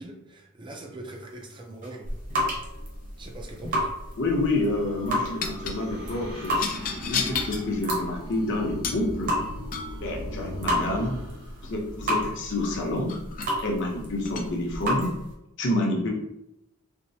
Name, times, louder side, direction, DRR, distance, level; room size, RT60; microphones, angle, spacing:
voice 1, 0.0-2.1 3.2-3.9, right 1 dB, 20° right, 2 dB, 0.4 m, -41 dB
sound 1, 1.8-15.3, equal, 40° right, 0.9 m, -32 dB
sound 2, 3.4-12.9, equal, 85° right, 1.0 m, -40 dB
sound 3, 3.5-3.8 5.4-5.8 6.5-7.7 8.8-9.1 9.7-10.0 12.4-12.5 13.1-13.5 14.2-14.5, left 5 dB, 40° left, 0.4 m, -32 dB
voice 2, 4.2-9.3 10.0-11.2 11.6-13.1 13.6-15.1 15.6-16.1, left 2 dB, 55° left, -1 dB, 0.8 m, -28 dB
4.4 x 2.0 x 2.7 m, 0.84 s
head